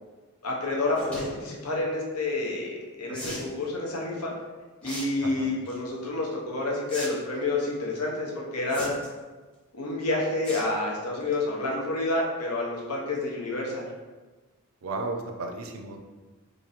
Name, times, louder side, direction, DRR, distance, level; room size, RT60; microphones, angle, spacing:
voice 1, 0.4-4.3 4.8-9.0 9.7-13.8, left 2 dB, 85° left, -2 dB, 0.9 m, -29 dB
sound 1, 0.9-1.3 3.1-3.5 4.8-5.1 5.4-5.8 6.9-7.1 7.4-7.5 8.7-9.2 10.4-10.7 11.1-11.3 11.7-11.8 12.0-12.1, equal, 5° left, 0.7 m, -37 dB
voice 2, 14.8-16.0, right 3 dB, 70° right, 4 dB, 0.5 m, -34 dB
3.0 x 2.6 x 4.0 m, 1.2 s
head